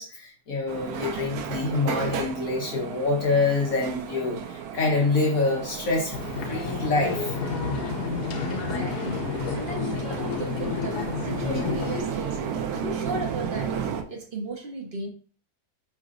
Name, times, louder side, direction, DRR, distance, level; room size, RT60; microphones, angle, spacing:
voice 1, 0.0-6.1 6.4-7.3, left 3 dB, 60° left, 1.5 m, -26 dB
sound 1, 0.7-14.0, right 7 dB, 70° right, 1.0 m, -34 dB
sound 2, 6.1-12.0, left 6 dB, 75° left, 1.3 m, -30 dB
voice 2, 8.5-12.4 12.7-13.8 14.1-15.1, right 2 dB, 40° right, 1.0 m, -35 dB
5.0 x 3.9 x 2.5 m
omnidirectional pair, 1.8 m